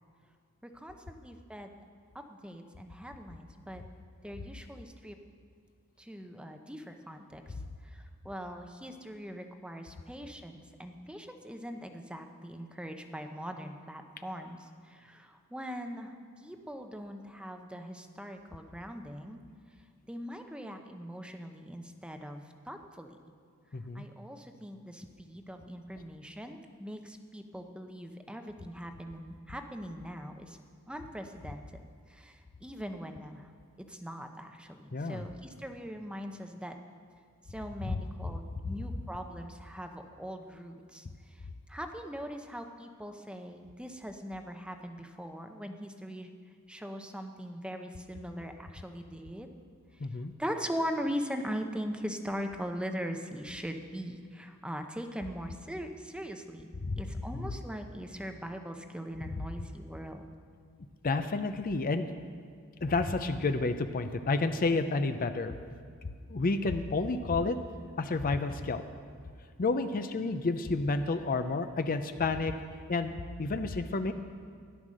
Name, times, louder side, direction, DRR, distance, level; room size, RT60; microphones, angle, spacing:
voice 1, 0.6-1.8 2.3-3.8 4.2-5.2 6.0-7.5 7.8-19.4 20.1-23.2 23.9-30.6 30.9-31.8 32.1-33.5 33.9-36.7 37.5-46.3 46.7-49.5 49.9-50.1 50.4-60.2, equal, 5° right, 5 dB, 0.7 m, -41 dB
voice 2, 23.7-24.1 34.9-35.2 50.0-50.3 56.8-57.0 57.3-57.6 61.0-62.1 62.8-65.5 66.3-67.6 68.0-68.8 69.6-72.5 72.9-73.1 73.4-74.1, left 3 dB, 40° left, 9 dB, 0.6 m, -30 dB
13.5 x 11.0 x 6.4 m, 2.1 s
head